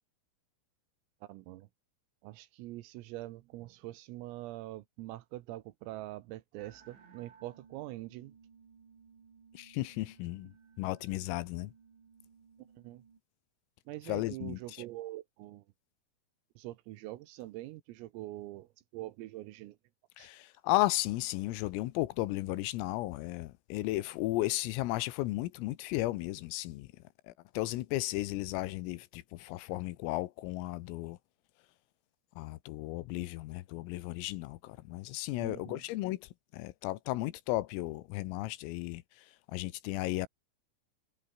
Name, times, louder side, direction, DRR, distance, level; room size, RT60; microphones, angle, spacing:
voice 1, 1.2-1.7 2.2-8.3 12.8-13.0 13.9-15.6 16.6-19.8 20.2-20.3 35.4-35.8, right 17 dB, 85° right, 3.8 m, -44 dB
sound 1, 6.6-13.2, right 6 dB, 60° right, 7.8 m, -60 dB
voice 2, 9.6-10.5 10.8-11.7 14.1-14.6 20.2-26.9 27.3-31.2 32.4-36.2 36.5-39.0 39.5-40.3, left 17 dB, 85° left, 3.7 m, -34 dB
omnidirectional pair, 6.0 m